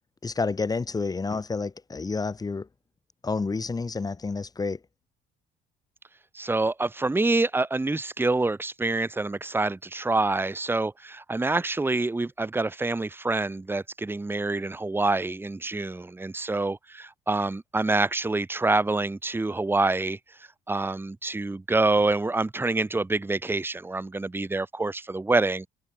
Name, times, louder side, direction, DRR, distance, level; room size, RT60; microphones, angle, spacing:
voice 1, 0.2-2.7 3.2-4.8, left 4 dB, 20° left, 3.6 m, -29 dB
voice 2, 6.3-20.2 20.7-25.7, right 2 dB, 15° right, 2.2 m, -26 dB
open air
cardioid pair, 110°, 17 cm